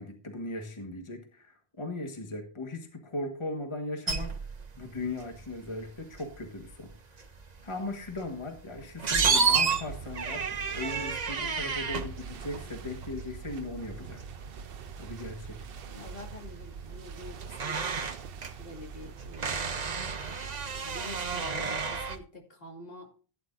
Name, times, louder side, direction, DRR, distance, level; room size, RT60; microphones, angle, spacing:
voice 1, 0.0-4.4 4.8-7.3 7.6-14.2 15.0-15.7, left 2 dB, 30° left, 4 dB, 1.5 m, -38 dB
sound 1, 4.1-22.2, right 5 dB, 45° right, 1.0 m, -32 dB
sound 2, 9.5-22.2, right 6 dB, 70° right, 0.9 m, -44 dB
voice 2, 15.8-18.1 18.6-19.8 20.8-23.1, left 1 dB, 65° left, 1 dB, 2.8 m, -47 dB
15.5 x 9.9 x 2.6 m, 0.39 s
omnidirectional pair, 1.0 m